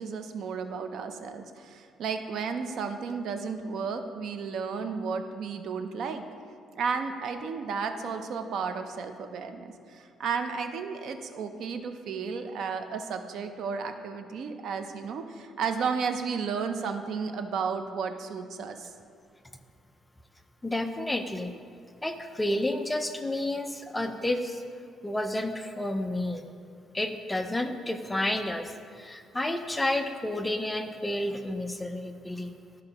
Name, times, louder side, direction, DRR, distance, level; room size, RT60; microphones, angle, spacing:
voice 1, 0.0-6.2 6.8-18.9, right 5 dB, 60° right, 7 dB, 0.5 m, -33 dB
voice 2, 20.6-21.5 22.0-24.6 25.0-26.5 26.9-32.5, left 1 dB, 10° left, 6 dB, 0.4 m, -30 dB
13.5 x 4.8 x 2.9 m, 2.2 s
cardioid pair, 160°, 0 cm